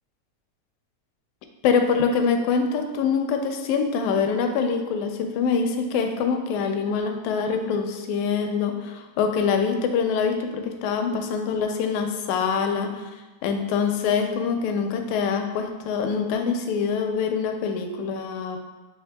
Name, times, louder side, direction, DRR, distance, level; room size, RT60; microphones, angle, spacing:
voice 1, 1.6-13.1 13.4-18.6, left 5 dB, 80° left, 4 dB, 1.9 m, -24 dB
7.8 x 3.0 x 2.2 m, 1.2 s
omnidirectional pair, 3.4 m